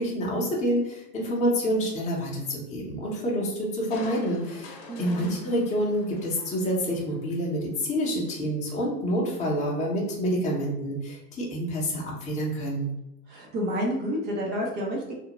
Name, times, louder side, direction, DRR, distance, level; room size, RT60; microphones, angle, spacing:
voice 1, 0.0-12.9, equal, 15° left, -4 dB, 0.7 m, -28 dB
Crushing, 3.9-7.3 7.7-7.8, left 3 dB, 60° left, 0.8 m, -45 dB
voice 2, 4.9-5.3 13.3-15.1, equal, 25° right, -1 dB, 0.4 m, -30 dB
2.5 x 2.0 x 2.9 m, 0.89 s
hypercardioid pair, 110°, 48 cm